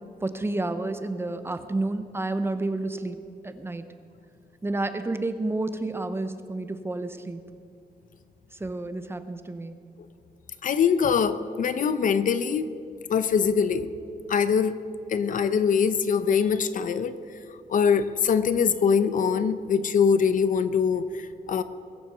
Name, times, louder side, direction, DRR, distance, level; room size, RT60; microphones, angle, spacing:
voice 1, 0.2-3.2 3.4-3.9 4.6-7.4 8.5-9.7, right 2 dB, 15° right, 10 dB, 0.7 m, -30 dB
voice 2, 10.6-12.7 13.1-13.9 14.3-14.8 15.1-17.2 17.7-21.6, left 6 dB, 55° left, 12 dB, 0.7 m, -23 dB
21.5 x 7.8 x 6.8 m, 2.7 s
wide cardioid pair, 155°, 16 cm